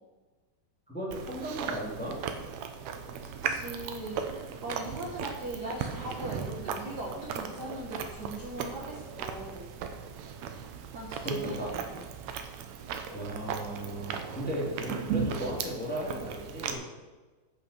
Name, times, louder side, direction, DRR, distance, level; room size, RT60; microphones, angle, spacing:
voice 1, 0.9-2.2 11.2-11.7 13.1-16.8, equal, 5° left, -5 dB, 1.9 m, -35 dB
Chewing mastication, 1.1-16.7, right 7 dB, 70° right, 1.7 m, -37 dB
voice 2, 3.4-9.7 10.9-12.0, right 1 dB, 50° right, -3 dB, 1.2 m, -40 dB
10.0 x 5.8 x 6.6 m, 1.3 s
omnidirectional pair, 4.1 m